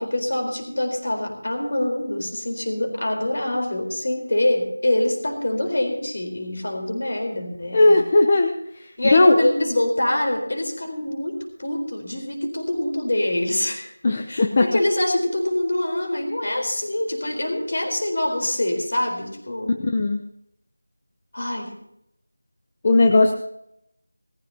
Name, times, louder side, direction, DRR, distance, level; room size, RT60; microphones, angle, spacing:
voice 1, 0.0-8.0 9.0-13.9 14.3-19.7 21.3-21.7, left 1 dB, 45° left, 3 dB, 4.2 m, -25 dB
voice 2, 7.7-8.5 9.1-9.5 14.0-14.7 19.9-20.2 22.8-23.3, left 2 dB, 20° left, 4 dB, 0.8 m, -16 dB
20.0 x 15.0 x 2.9 m, 0.78 s
figure-of-eight pair, 175°, 0 cm